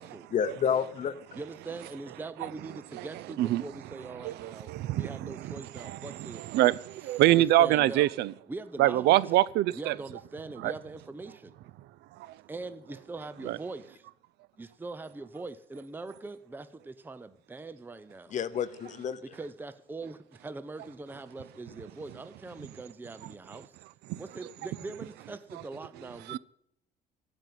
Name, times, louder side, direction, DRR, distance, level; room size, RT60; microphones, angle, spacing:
voice 1, 0.3-1.1 18.3-19.2, left 8 dB, 45° left, 0.9 m, -29 dB
voice 2, 1.3-6.4 7.0-8.1 8.5-9.2 9.7-11.5 12.5-14.0 14.6-18.4 19.2-23.8 24.2-26.4, right 3 dB, 10° right, 0.6 m, -42 dB
voice 3, 4.2-5.5 5.8-6.0 6.5-8.3 8.8-9.9 10.6-10.7 12.2-12.3 13.5-13.6 24.1-24.2 26.3-26.4, right 15 dB, 80° right, 0.5 m, -25 dB
15.0 x 5.3 x 9.3 m
cardioid pair, 110°, 17 cm